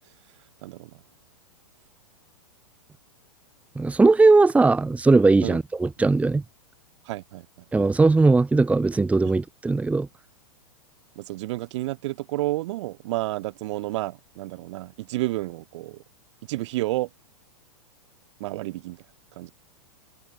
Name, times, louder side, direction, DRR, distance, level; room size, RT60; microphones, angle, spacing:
voice 1, 3.7-6.4 7.7-10.1, right 3 dB, 10° right, 1.5 m, -19 dB
voice 2, 7.0-7.5 9.2-9.3 11.2-16.0 16.5-17.1 18.4-19.0 19.4-19.5, right 18 dB, 60° right, 7.9 m, -30 dB
hypercardioid pair, 125°, 17 cm